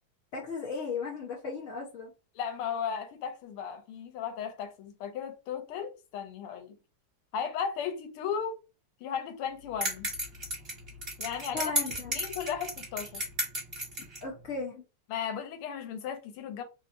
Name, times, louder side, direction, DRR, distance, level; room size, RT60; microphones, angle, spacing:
voice 1, 0.3-2.1 11.5-12.2 14.2-14.8, left 4 dB, 55° left, 0.8 m, -36 dB
voice 2, 2.3-6.8 7.3-8.6 9.0-10.1 11.2-11.7 12.1-13.2 15.1-16.6, left 7 dB, 90° left, 1.6 m, -35 dB
sound 1, 9.8-14.2, equal, 30° right, 1.7 m, -33 dB
3.4 x 2.7 x 2.5 m
omnidirectional pair, 2.3 m